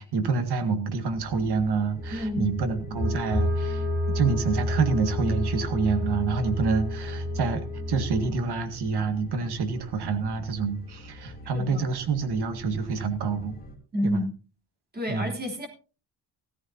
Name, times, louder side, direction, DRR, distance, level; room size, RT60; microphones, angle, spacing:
voice 1, 0.0-13.6 14.0-14.2 15.1-15.3, right 4 dB, 65° right, 8 dB, 2.0 m, -27 dB
sound 1, 1.1-13.8, right 1 dB, 20° left, 3.1 m, -46 dB
sound 2, 2.0-8.3, left 1 dB, 5° right, 7.9 m, -30 dB
voice 2, 2.1-2.5 11.5-11.8 13.9-14.3 14.9-15.7, equal, 20° right, 1 dB, 3.4 m, -29 dB
16.5 x 14.5 x 2.8 m, 0.34 s
cardioid pair, 160°, 43 cm